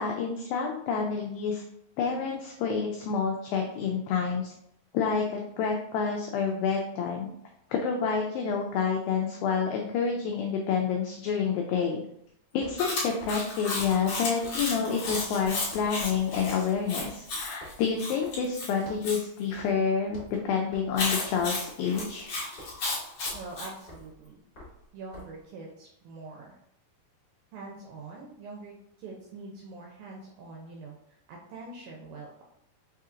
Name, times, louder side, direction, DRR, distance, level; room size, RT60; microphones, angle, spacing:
voice 1, 0.0-1.6 2.0-4.5 4.9-7.3 7.7-12.0 12.5-20.2 20.4-22.3, left 6 dB, 90° left, 1 dB, 2.0 m, -28 dB
sound 1, 12.5-15.4 15.7-16.0 16.3-18.6 18.8-19.2 19.5-19.8 20.0-25.4, left 1 dB, 50° left, 1.1 m, -49 dB
Chewing mastication, 12.8-19.2 20.9-23.7, left 3 dB, 75° left, 1.3 m, -33 dB
voice 2, 23.3-24.4 24.9-26.6 27.5-32.4, right 3 dB, 80° right, -1 dB, 2.0 m, -44 dB
6.2 x 2.8 x 2.4 m, 0.75 s
omnidirectional pair, 4.7 m